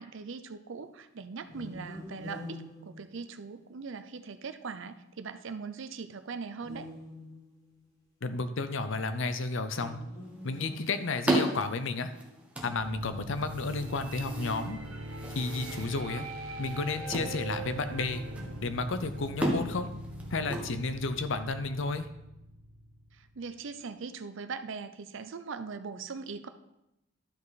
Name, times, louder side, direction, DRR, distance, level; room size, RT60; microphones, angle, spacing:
voice 1, 0.0-6.9 23.1-26.5, right 5 dB, 65° right, 10 dB, 0.6 m, -40 dB
sound 1, 1.4-3.8 6.5-7.8 9.7-11.6, left 1 dB, 20° left, 1.6 m, -46 dB
voice 2, 8.2-10.0 10.4-12.1 12.6-14.8 15.4-16.3 16.6-18.2 18.6-19.9 20.3-22.1, left 3 dB, 70° left, 10 dB, 0.7 m, -32 dB
sound 2, 10.2-21.3, right 1 dB, 5° right, 1.2 m, -36 dB
sound 3, 12.6-23.5, right 1 dB, 85° right, 1.0 m, -41 dB
12.0 x 5.4 x 4.1 m, 0.87 s
head